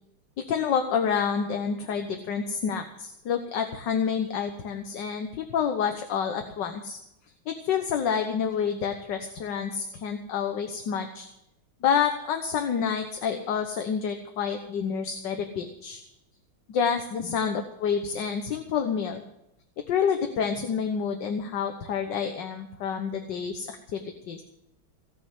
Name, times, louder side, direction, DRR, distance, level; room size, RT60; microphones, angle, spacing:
voice 1, 0.4-7.0 7.5-11.3 11.8-16.0 16.7-19.2 19.9-24.4, left 7 dB, 60° left, 6 dB, 1.6 m, -28 dB
17.5 x 6.6 x 9.6 m, 0.83 s
omnidirectional pair, 2.4 m